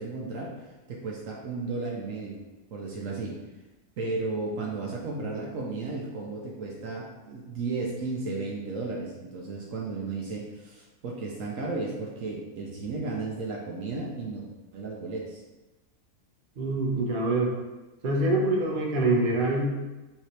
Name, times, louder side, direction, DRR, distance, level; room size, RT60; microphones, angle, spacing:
voice 1, 0.0-2.4 2.7-3.4 4.0-14.5 14.7-15.4, right 3 dB, 65° right, -2 dB, 1.0 m, -34 dB
voice 2, 16.6-17.5 18.0-19.7, right 2 dB, 40° right, -2 dB, 0.8 m, -25 dB
5.8 x 2.8 x 3.2 m, 1.1 s
omnidirectional pair, 1.6 m